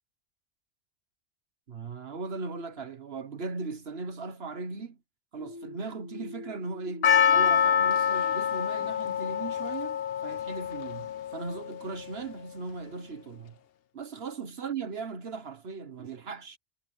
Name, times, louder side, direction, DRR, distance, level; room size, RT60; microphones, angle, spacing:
voice 1, 1.7-5.0 5.3-13.6 13.9-16.6, right 4 dB, 65° right, 1.5 m, -38 dB
sound 1, 5.4-9.0, left 2 dB, 15° right, 3.0 m, -47 dB
Percussion, 7.0-12.0, left 8 dB, 65° left, 0.9 m, -26 dB
omnidirectional pair, 1.1 m